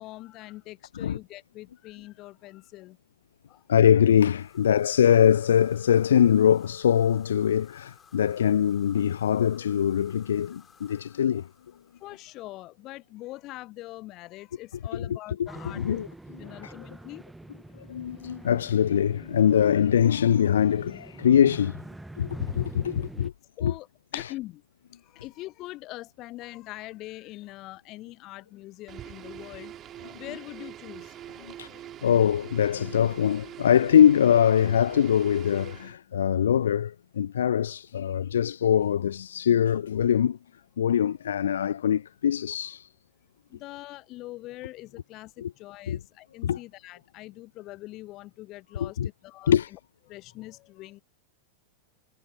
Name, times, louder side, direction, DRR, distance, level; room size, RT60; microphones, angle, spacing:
voice 1, 0.0-3.0 3.5-3.6 10.9-11.0 12.0-16.0 16.4-17.2 23.6-23.9 24.1-24.6 24.9-29.7 30.1-31.8 43.5-49.8 50.1-51.0, left 18 dB, 40° left, 1.0 m, -43 dB
voice 2, 3.7-11.5 14.9-15.1 15.4-15.5 15.7-16.1 16.6-16.7 17.8-21.8 22.2-23.3 23.6-23.7 24.1-24.3 31.4-31.7 32.0-40.4 40.8-42.9 45.4-45.5 45.9-46.0 46.4-46.6 48.8-49.1 49.5-49.7, left 9 dB, 65° left, 0.4 m, -23 dB
sound 1, 4.0-12.5, left 7 dB, 20° left, 5.8 m, -58 dB
sound 2, 15.5-23.3, right 2 dB, 5° right, 1.5 m, -44 dB
sound 3, 28.9-36.0, right 11 dB, 30° right, 4.2 m, -44 dB
figure-of-eight pair, 90°, 0 cm